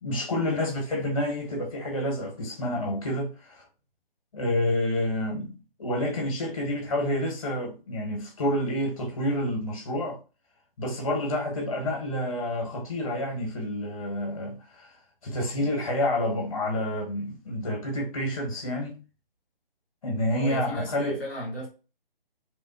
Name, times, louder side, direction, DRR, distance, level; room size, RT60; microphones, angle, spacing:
voice 1, 0.0-3.6 4.3-10.2 10.8-14.9 15.2-19.0 20.0-21.2, left 1 dB, 35° left, 1.0 m, -29 dB
voice 2, 20.3-21.7, equal, 5° left, 0.7 m, -35 dB
3.0 x 2.1 x 2.5 m
figure-of-eight pair, 150°, 29 cm